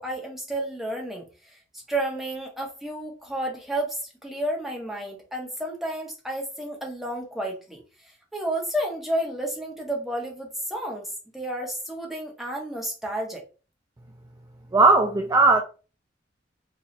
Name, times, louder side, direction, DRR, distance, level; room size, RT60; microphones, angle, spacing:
voice 1, 0.0-7.8 8.3-13.4, right 1 dB, ahead, 0.9 m, -31 dB
voice 2, 14.7-15.6, right 3 dB, 20° right, 0.3 m, -17 dB
4.1 x 2.3 x 3.0 m
head